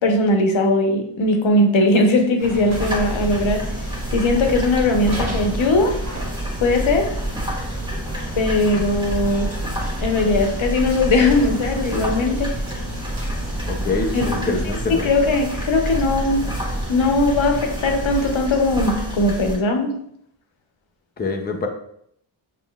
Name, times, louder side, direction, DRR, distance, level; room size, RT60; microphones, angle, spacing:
voice 1, 0.0-3.6 4.1-6.0 6.6-7.1 8.4-9.5 10.0-12.5 14.1-14.5 14.9-16.4 16.9-19.9, left 2 dB, 70° left, 4 dB, 0.9 m, -19 dB
sound 1, 2.4-18.4, right 1 dB, 35° right, 1.2 m, -34 dB
sound 2, 2.7-19.6, right 1 dB, 10° right, 1.2 m, -28 dB
voice 2, 13.7-15.1 21.2-21.7, left 3 dB, 20° left, 2 dB, 0.5 m, -25 dB
7.1 x 3.1 x 2.3 m, 0.71 s
wide cardioid pair, 120°, 49 cm